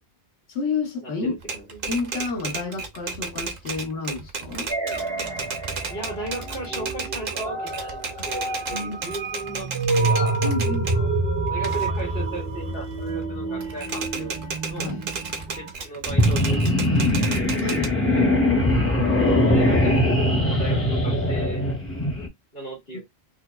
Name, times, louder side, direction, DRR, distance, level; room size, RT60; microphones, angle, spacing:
voice 1, 0.5-1.4 1.9-4.7 8.7-9.1 10.4-10.9 14.8-15.0 17.6-17.9 22.9-23.0, left 4 dB, 85° left, 1.2 m, -30 dB
voice 2, 1.0-1.8 5.9-11.1 11.5-14.4 14.7-14.9 15.6-17.6 19.2-21.7 22.5-23.0, right 1 dB, 65° left, 2.4 m, -36 dB
Typewriter, 1.4-11.0 11.5-13.2 13.6-17.9, right 5 dB, 60° right, 0.8 m, -33 dB
sound 1, 4.7-15.7, right 2 dB, 30° right, 0.6 m, -28 dB
sound 2, 16.1-22.3, left 1 dB, 15° left, 0.6 m, -21 dB
4.5 x 2.2 x 2.3 m
omnidirectional pair, 1.1 m